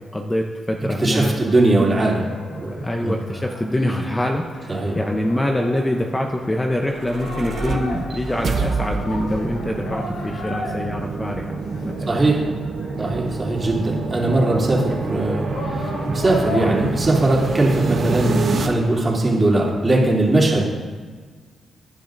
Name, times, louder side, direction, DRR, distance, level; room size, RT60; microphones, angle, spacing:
voice 1, 0.0-1.3 2.8-11.6 11.8-12.1 13.5-13.8, left 1 dB, 10° left, 2 dB, 0.7 m, -25 dB
voice 2, 1.0-3.2 4.7-5.0 12.1-12.5 13.0-15.5 15.7-20.7, right 2 dB, 25° right, -3 dB, 2.9 m, -20 dB
sound 1, 1.1-19.6, left 2 dB, 85° left, 2.6 m, -36 dB
sound 2, 6.6-18.7, right 4 dB, 60° right, 1.1 m, -27 dB
18.0 x 10.5 x 2.6 m, 1.5 s
cardioid pair, 110°, 0 cm